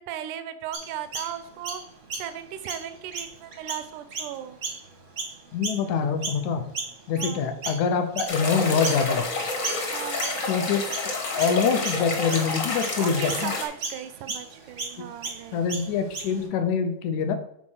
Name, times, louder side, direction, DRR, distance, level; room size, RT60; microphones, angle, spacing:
voice 1, 0.0-1.8 2.2-4.6 7.1-7.5 9.9-10.3 13.0-15.6, right 10 dB, 90° right, 10 dB, 2.2 m, -36 dB
Chirp tweet, 0.7-6.5 6.7-16.5, right 3 dB, 60° right, 0.7 m, -36 dB
voice 2, 5.5-6.6 7.1-9.3 10.5-10.8 11.4-13.5 15.0-15.1 15.5-17.4, left 6 dB, 80° left, 7 dB, 2.1 m, -25 dB
sound 1, 8.3-13.6, left 3 dB, 45° left, 1.1 m, -29 dB
5.9 x 4.2 x 6.2 m, 0.72 s
omnidirectional pair, 3.4 m